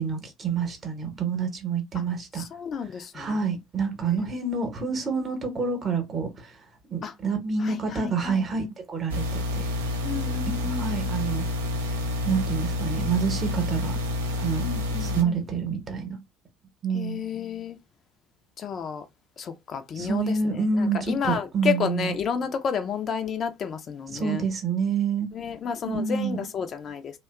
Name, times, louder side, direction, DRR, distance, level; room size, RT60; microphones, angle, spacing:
voice 1, 0.0-2.5 3.1-6.5 6.9-9.6 10.5-11.5 12.2-14.0 14.4-14.7 15.0-16.2 16.8-17.3 20.0-22.1 24.1-25.3 25.8-26.4, right 5 dB, 35° right, 0.9 m, -28 dB
voice 2, 2.3-3.3 7.0-7.1 7.6-8.5 10.0-10.9 14.6-15.4 16.9-17.8 18.6-19.1 19.4-24.4 25.3-27.2, left 7 dB, 40° left, 0.4 m, -31 dB
sound 1, 9.1-15.2, left 2 dB, 75° right, 0.5 m, -29 dB
2.7 x 2.2 x 2.3 m
figure-of-eight pair, 60°, 0 cm